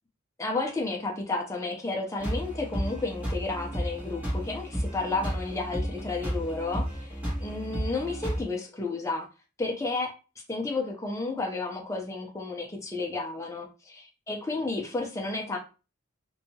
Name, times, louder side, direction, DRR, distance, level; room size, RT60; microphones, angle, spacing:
voice 1, 0.4-7.1 7.4-9.3 9.6-10.1 10.5-13.7 14.3-15.6, left 3 dB, 15° left, 0 dB, 0.4 m, -32 dB
sound 1, 2.2-8.4, equal, 10° right, 1.5 m, -33 dB
2.7 x 2.2 x 2.7 m, 0.32 s
head